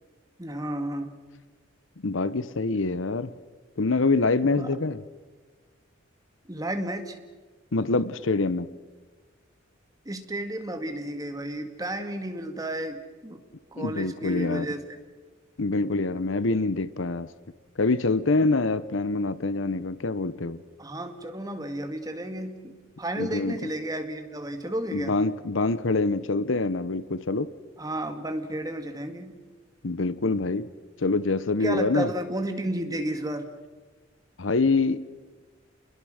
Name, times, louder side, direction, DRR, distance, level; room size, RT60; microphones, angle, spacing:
voice 1, 0.4-1.2 4.6-4.8 6.5-7.2 10.1-13.4 13.7-15.0 20.8-25.1 27.8-29.4 31.6-33.5, right 1 dB, 20° right, 6 dB, 1.9 m, -32 dB
voice 2, 2.0-3.3 3.8-5.0 7.7-8.7 13.8-14.7 15.6-17.3 17.8-20.6 23.2-23.5 24.9-27.5 29.8-30.7 31.0-32.1 34.4-35.0, left 3 dB, 70° left, 15 dB, 0.9 m, -25 dB
29.5 x 21.5 x 6.5 m, 1.4 s
head